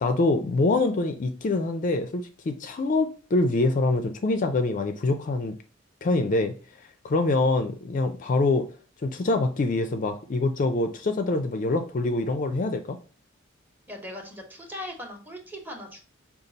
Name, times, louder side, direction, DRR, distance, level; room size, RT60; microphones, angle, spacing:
voice 1, 0.0-5.5 6.0-6.5 7.0-8.7 9.0-13.0, left 2 dB, 40° left, 0.4 m, -25 dB
voice 2, 13.9-16.1, left 1 dB, 10° right, 1.0 m, -39 dB
5.2 x 2.4 x 4.0 m
head